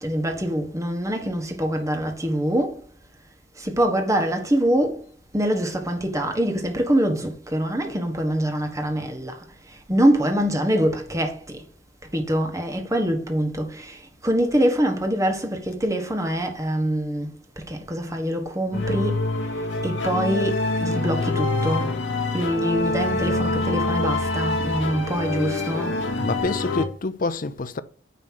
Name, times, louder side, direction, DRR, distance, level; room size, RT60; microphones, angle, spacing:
voice 1, 0.0-2.8 3.6-5.0 5.3-9.4 9.9-11.6 12.1-17.3 17.7-19.2 19.8-21.9 22.3-25.9, equal, 15° right, 1.4 m, -24 dB
sound 1, 18.7-26.9, left 2 dB, 70° left, 1.2 m, -25 dB
voice 2, 26.2-27.8, left 3 dB, 45° left, 0.6 m, -27 dB
9.3 x 3.2 x 6.3 m
head